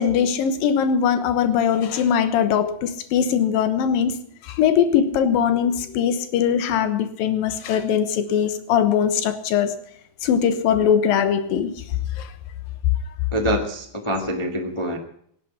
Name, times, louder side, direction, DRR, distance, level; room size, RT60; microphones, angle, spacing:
voice 1, 0.0-4.2 4.4-9.8 10.2-11.8 12.2-12.3, left 8 dB, 85° left, 3.0 m, -21 dB
voice 2, 13.3-15.0, equal, 45° left, 0.4 m, -25 dB
17.0 x 8.5 x 8.6 m
omnidirectional pair, 4.0 m